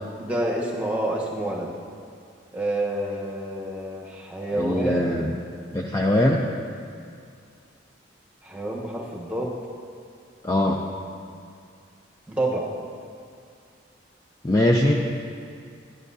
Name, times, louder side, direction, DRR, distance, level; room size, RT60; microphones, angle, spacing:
voice 1, 0.2-1.7 2.5-5.2 8.4-9.6 12.3-12.7, right 1 dB, 5° right, -2 dB, 1.1 m, -28 dB
voice 2, 4.6-5.3 5.7-6.5 10.4-10.8 14.4-15.0, left 1 dB, 15° left, -1 dB, 0.4 m, -21 dB
13.0 x 11.0 x 2.7 m, 2.3 s
head